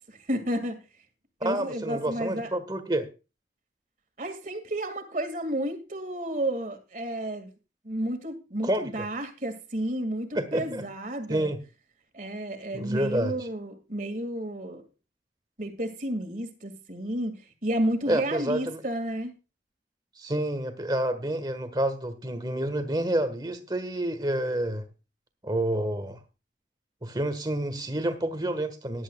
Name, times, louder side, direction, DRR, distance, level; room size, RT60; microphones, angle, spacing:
voice 1, 0.1-0.8 1.4-2.5 4.2-7.5 7.8-11.5 12.1-14.9 15.6-19.3, right 1 dB, 45° right, 2.2 m, -31 dB
voice 2, 1.4-3.1 8.6-8.9 10.3-10.8 11.3-11.6 12.7-13.3 18.1-18.8 20.2-24.9 25.4-26.2 27.0-29.0, right 1 dB, 25° right, 1.5 m, -28 dB
17.5 x 11.0 x 2.3 m
head